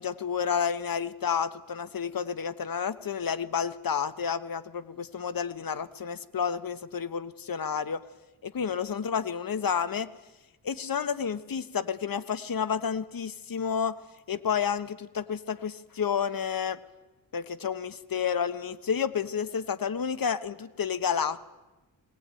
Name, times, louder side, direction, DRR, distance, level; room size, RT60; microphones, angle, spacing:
voice 1, 0.0-8.0 8.4-10.1 10.6-14.0 14.3-16.8 17.3-21.4, left 7 dB, 45° left, 14 dB, 1.2 m, -30 dB
21.5 x 18.5 x 9.0 m, 1.1 s
cardioid pair, 80°, 46 cm